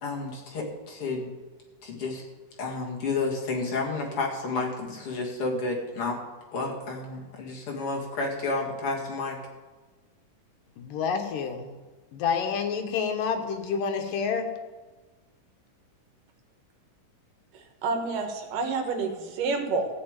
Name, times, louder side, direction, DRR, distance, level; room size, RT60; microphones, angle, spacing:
voice 1, 0.0-1.3 1.8-2.2 2.6-6.2 6.5-9.4, left 3 dB, 45° left, -1 dB, 2.9 m, -31 dB
voice 2, 10.8-11.8 12.1-14.5, left 6 dB, 80° left, 5 dB, 2.9 m, -28 dB
voice 3, 17.5-19.9, right 4 dB, 75° right, 4 dB, 3.1 m, -29 dB
14.5 x 5.7 x 9.0 m, 1.3 s
omnidirectional pair, 3.8 m